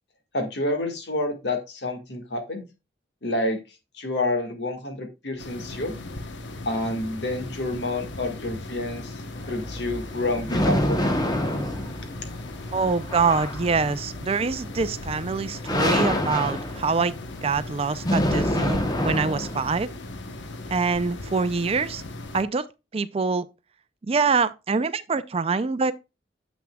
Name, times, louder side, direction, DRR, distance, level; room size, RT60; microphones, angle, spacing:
voice 1, 0.3-2.6 3.2-3.6 4.0-5.9 6.7-9.2 9.5-11.1, left 2 dB, 65° left, 1.7 m, -28 dB
sound 1, 5.4-22.4, left 2 dB, 90° left, 1.0 m, -38 dB
sound 2, 9.4-19.8, left 1 dB, 20° left, 1.0 m, -27 dB
voice 2, 12.7-18.8 19.0-19.9 20.7-22.0 22.3-22.7 22.9-23.5 24.1-25.9, right 4 dB, 35° right, 0.4 m, -25 dB
9.4 x 7.1 x 2.3 m
head